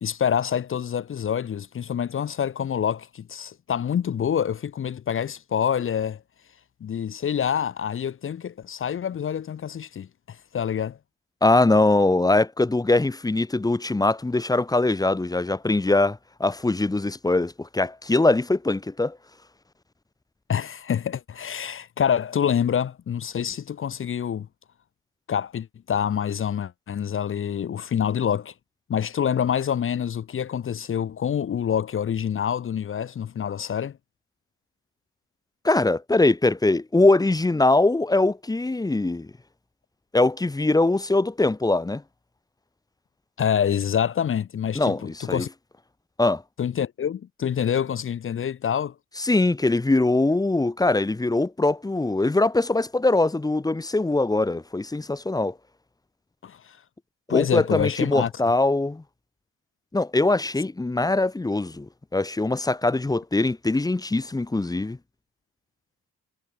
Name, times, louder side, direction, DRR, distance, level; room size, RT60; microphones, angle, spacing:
voice 1, 0.0-6.2 6.8-11.0 20.5-24.5 25.3-28.5 28.9-34.0 43.4-45.5 46.6-48.9 56.4-56.8 57.3-58.3, left 8 dB, 45° left, 0.9 m, -26 dB
voice 2, 11.4-19.2 35.6-39.3 40.1-42.0 44.7-45.5 46.2-46.4 49.2-55.6 57.3-59.0 59.9-65.0, left 2 dB, 10° left, 1.0 m, -22 dB
cardioid pair, 90°, 30 cm